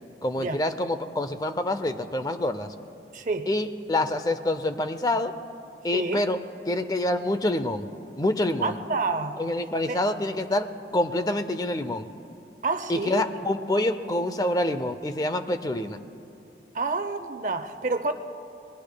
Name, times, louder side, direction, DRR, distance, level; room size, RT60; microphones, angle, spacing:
voice 1, 0.2-2.7 3.5-5.3 5.8-6.4 6.7-7.9 8.2-8.8 9.4-12.1 12.9-16.0, left 1 dB, 20° left, 10 dB, 0.5 m, -26 dB
voice 2, 3.1-3.5 5.9-6.2 8.6-9.4 9.9-10.0 12.6-13.2 16.7-18.1, right 3 dB, 45° right, 8 dB, 0.7 m, -28 dB
27.5 x 20.5 x 2.2 m, 2.7 s
head